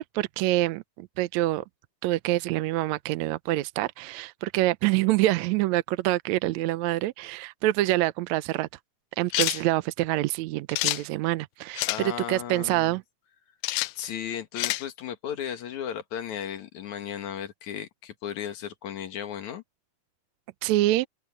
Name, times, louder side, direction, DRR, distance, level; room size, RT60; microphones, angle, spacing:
voice 1, 0.0-1.6 2.0-8.7 9.2-13.0 20.6-21.1, right 16 dB, 75° right, 1.7 m, -26 dB
sound 1, 9.3-9.6 10.7-11.0 11.8-12.0 13.6-13.9 14.6-14.8, left 19 dB, 85° left, 1.5 m, -27 dB
voice 2, 11.9-13.0 14.0-19.6, left 9 dB, 65° left, 2.8 m, -35 dB
omnidirectional pair, 3.6 m